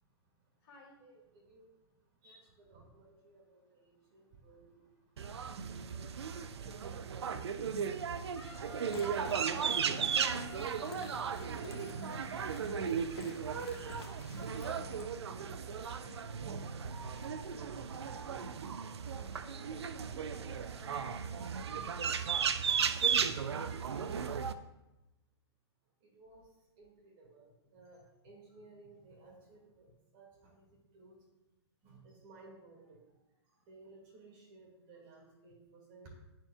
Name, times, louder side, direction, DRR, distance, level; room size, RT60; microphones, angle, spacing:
voice 1, 1.0-1.7 2.2-4.9 5.4-7.0 7.3-9.2 15.3-15.5 26.0-26.5 26.8-31.2 31.8-33.0 33.7-36.1, right 3 dB, 35° right, -2 dB, 2.1 m, -58 dB
sound 1, 5.2-24.5, right 6 dB, 70° right, 0.4 m, -36 dB
Wind instrument woodwind instrument, 8.4-12.8, right 3 dB, 90° right, 2.0 m, -52 dB
sound 2, 8.6-15.1, left 5 dB, 65° left, 0.8 m, -51 dB
voice 2, 14.6-22.5, left 2 dB, 40° left, -4 dB, 2.1 m, -59 dB
9.7 x 4.5 x 2.3 m, 0.96 s
figure-of-eight pair, 115°, 14 cm